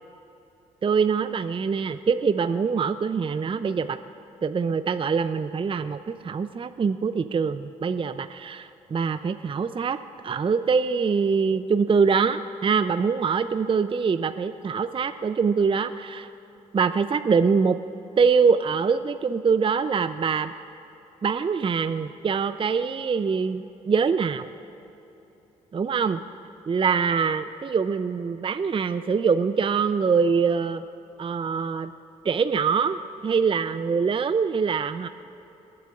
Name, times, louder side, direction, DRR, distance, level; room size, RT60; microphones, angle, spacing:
voice 1, 0.8-4.0 4.4-10.0 10.2-16.3 16.7-17.8 18.2-20.5 21.2-24.5 25.7-26.2 26.7-30.8 31.2-31.9 32.2-35.1, right 5 dB, 30° right, 11 dB, 0.6 m, -24 dB
28.5 x 11.5 x 2.5 m, 2.9 s
hypercardioid pair, 45°, 18 cm